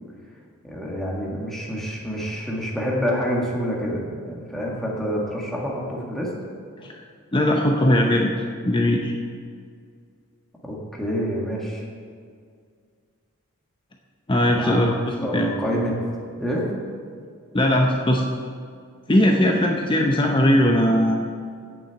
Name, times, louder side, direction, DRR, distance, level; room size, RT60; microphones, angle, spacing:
voice 1, 0.6-6.3 10.6-11.8 14.5-16.7, equal, ahead, -4 dB, 1.7 m, -27 dB
voice 2, 7.3-8.3 8.6-9.1 14.3-15.0 15.3-15.5 17.5-18.2 19.1-21.2, left 1 dB, 20° left, 1 dB, 0.6 m, -19 dB
8.6 x 7.2 x 8.0 m, 2.2 s
head